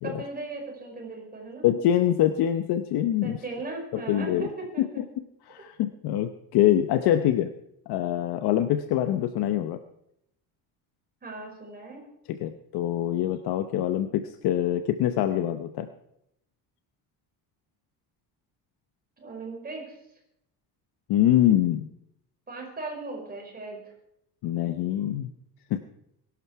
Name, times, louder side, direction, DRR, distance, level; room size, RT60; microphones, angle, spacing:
voice 1, 0.0-1.7 3.2-5.0 11.2-12.0 19.2-20.0 22.5-23.9, right 3 dB, 20° right, 1 dB, 5.0 m, -37 dB
voice 2, 1.6-3.4 3.9-4.5 4.8-5.0 5.5-7.5 7.9-9.8 12.3-15.9 21.1-21.9 24.4-25.3 25.7-25.8, left 11 dB, 70° left, 9 dB, 0.9 m, -24 dB
22.5 x 12.0 x 4.7 m, 0.80 s
cardioid pair, 150°, 40 cm